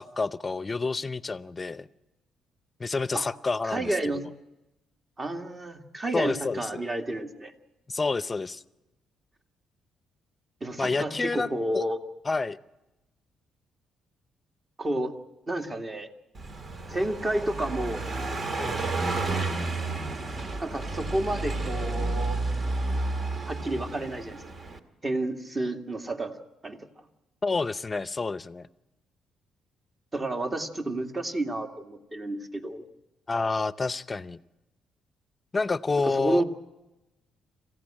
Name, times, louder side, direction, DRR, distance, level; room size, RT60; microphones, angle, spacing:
voice 1, 0.0-1.9 2.8-4.0 6.1-6.8 7.9-8.6 10.8-11.8 12.3-12.6 18.6-19.0 27.4-28.7 33.3-34.4 35.5-36.4, left 3 dB, 25° left, 15 dB, 0.7 m, -29 dB
voice 2, 3.6-4.2 5.2-7.5 10.6-12.0 14.8-15.2 15.5-16.1 16.9-18.0 20.6-22.4 23.5-24.4 25.0-26.3 26.6-26.8 30.1-32.8 36.0-36.4, right 1 dB, 30° right, 4 dB, 2.0 m, -30 dB
Car passing by, 16.3-24.8, right 2 dB, 45° right, 2.0 m, -31 dB
27.0 x 15.5 x 8.8 m, 1.0 s
cardioid pair, 90°, 0 cm